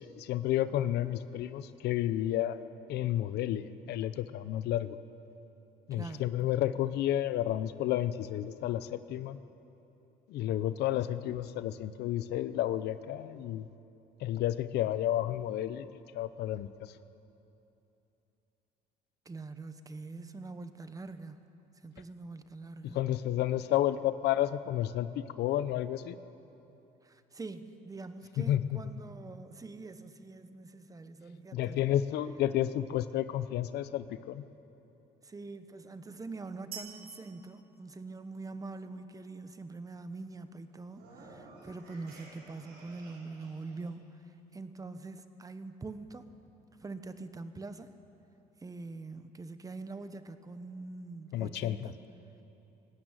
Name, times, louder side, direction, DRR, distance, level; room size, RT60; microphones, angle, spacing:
voice 1, 0.0-2.6 2.9-5.0 5.9-9.4 10.3-13.7 14.2-15.9 16.1-16.9 22.8-26.2 28.4-28.8 31.5-34.4 51.3-51.9, left 12 dB, 75° left, 14 dB, 0.7 m, -31 dB
voice 2, 5.9-6.2 19.2-21.5 21.8-23.0 27.0-31.9 35.2-46.2 46.8-47.9 48.6-51.9, right 3 dB, 20° right, 10 dB, 1.1 m, -44 dB
sound 1, 36.7-38.7, right 7 dB, 60° right, 1.9 m, -48 dB
sound 2, 40.9-43.9, right 2 dB, 80° right, 6.5 m, -54 dB
19.0 x 16.5 x 9.0 m, 3.0 s
cardioid pair, 110°, 17 cm